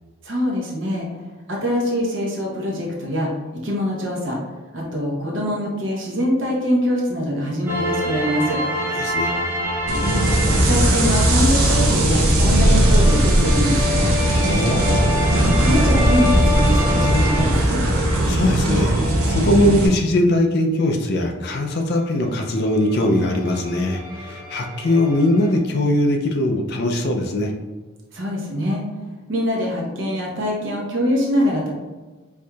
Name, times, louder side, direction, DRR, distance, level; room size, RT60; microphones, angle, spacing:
voice 1, 0.2-1.2 1.5-3.3 3.6-4.4 4.7-8.6 10.0-14.1 15.6-17.8 28.1-28.8 29.3-31.7, equal, 60° right, -2 dB, 0.8 m, -23 dB
sound 1, 7.7-18.4 22.1-22.2 22.4-25.6, left 1 dB, 10° right, 0.5 m, -28 dB
voice 2, 8.9-9.3 14.3-15.1 18.3-18.9 19.2-27.5, left 1 dB, 50° left, 3 dB, 0.4 m, -20 dB
sound 2, 9.9-19.9, right 1 dB, 85° right, 0.8 m, -18 dB
4.5 x 2.6 x 2.3 m, 1.3 s
head